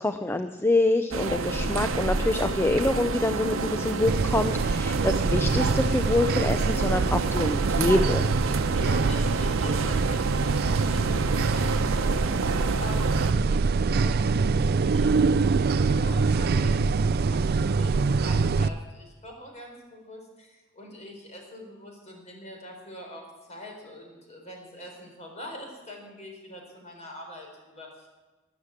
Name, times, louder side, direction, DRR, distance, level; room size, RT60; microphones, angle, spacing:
voice 1, 0.0-8.3, left 2 dB, 10° left, 8 dB, 0.5 m, -26 dB
sound 1, 1.1-13.3, right 3 dB, 80° right, 0.9 m, -29 dB
sound 2, 4.1-18.7, right 4 dB, 50° right, 0.4 m, -25 dB
voice 2, 8.5-12.5 12.8-28.1, left 1 dB, 35° left, 1 dB, 4.3 m, -44 dB
13.5 x 12.0 x 7.3 m, 1.2 s
head